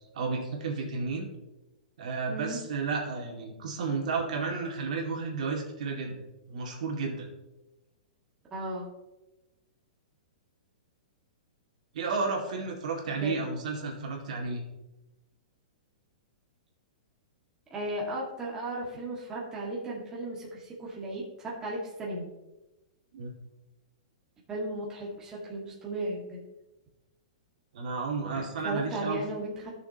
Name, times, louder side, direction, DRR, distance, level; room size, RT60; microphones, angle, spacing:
voice 1, 0.1-1.3 2.0-7.3 11.9-14.6 23.1-23.3 27.7-29.2, right 4 dB, 65° right, 0 dB, 2.2 m, -32 dB
voice 2, 2.3-2.6 8.5-8.9 13.2-13.3 17.7-22.3 24.5-26.4 28.3-29.7, right 1 dB, 15° right, -5 dB, 1.9 m, -35 dB
15.0 x 6.5 x 2.9 m, 1.0 s
hypercardioid pair, 155°, 4 cm